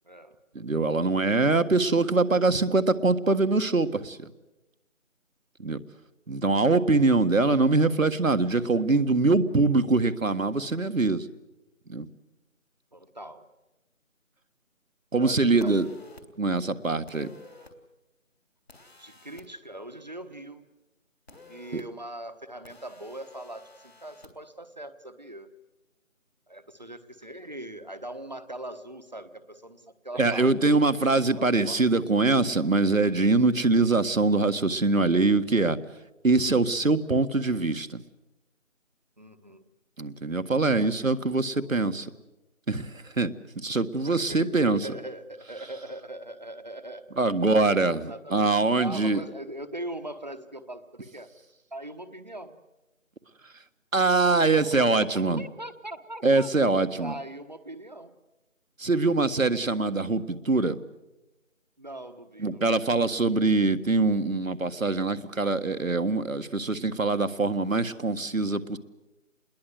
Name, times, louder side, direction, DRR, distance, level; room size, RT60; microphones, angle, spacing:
voice 1, 0.0-0.4 12.9-13.5 15.2-15.9 19.0-20.7 21.5-25.5 26.5-30.5 31.3-31.9 39.2-39.6 40.7-41.0 44.0-47.2 47.9-48.5 48.8-51.3 51.7-52.6 54.4-55.1 55.4-56.5 57.0-58.1 61.8-62.9, right 1 dB, 35° right, 10 dB, 1.2 m, -41 dB
voice 2, 0.6-4.3 5.6-5.8 6.3-11.3 11.9-12.1 15.1-15.9 16.4-17.3 21.7-21.8 30.2-35.8 36.2-38.0 40.0-42.1 42.7-44.8 47.2-49.2 53.9-55.4 56.2-57.1 58.8-60.7 62.4-68.8, right 3 dB, 80° right, 11 dB, 1.7 m, -23 dB
sound 1, 15.6-16.2 17.1-17.7 18.7-19.5 21.3-21.8 22.6-24.3, left 2 dB, 50° left, 3.2 m, -51 dB
27.5 x 21.0 x 7.9 m, 1.0 s
figure-of-eight pair, 175°, 40 cm